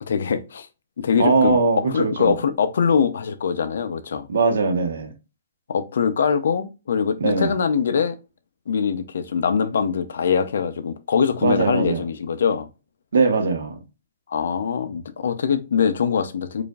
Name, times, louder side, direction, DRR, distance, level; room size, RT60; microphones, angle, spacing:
voice 1, 0.1-0.7 1.0-1.6 1.9-4.3 5.7-8.1 8.7-12.7 14.3-16.6, left 6 dB, 65° left, 0.6 m, -23 dB
voice 2, 1.2-2.3 4.3-5.1 7.2-7.5 11.4-12.0 13.1-13.8, right 4 dB, 80° right, 1.1 m, -20 dB
4.9 x 2.6 x 2.3 m
hypercardioid pair, 175°, 0 cm